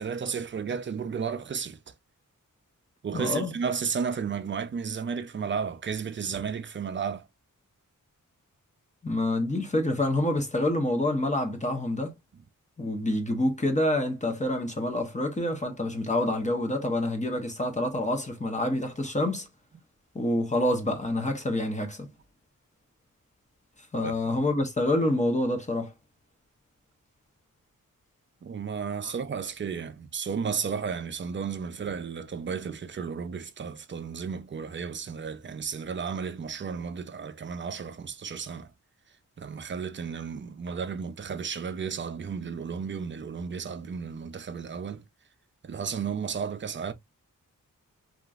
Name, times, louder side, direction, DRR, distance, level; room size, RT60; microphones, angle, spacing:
voice 1, 0.0-1.8 3.0-7.3 24.0-24.1 28.4-38.7 39.4-45.0 45.6-46.9, right 6 dB, 35° right, 0.4 m, -33 dB
voice 2, 3.1-3.5 9.0-12.1 12.8-19.5 20.1-22.1 23.9-25.9, left 1 dB, 20° left, 0.6 m, -27 dB
2.9 x 2.4 x 2.3 m
wide cardioid pair, 120°, 33 cm